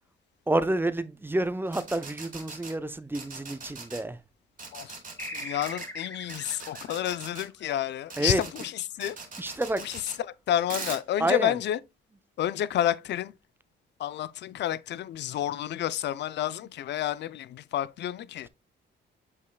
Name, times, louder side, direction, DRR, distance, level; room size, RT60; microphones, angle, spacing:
voice 1, 0.5-4.2 8.2-8.4 9.4-9.8 11.2-11.5, right 1 dB, 10° right, 0.6 m, -28 dB
sound 1, 1.7-2.7 3.1-4.0 4.6-5.9 6.3-7.5 8.1-8.7 9.0-10.2 10.7-11.0, right 4 dB, 40° right, 3.0 m, -41 dB
sound 2, 5.2-8.2, left 1 dB, 10° left, 1.9 m, -41 dB
voice 2, 5.3-9.2 9.8-11.8 12.4-13.3 14.0-18.5, left 11 dB, 60° left, 0.5 m, -30 dB
8.2 x 5.5 x 2.2 m
cardioid pair, 90°, 20 cm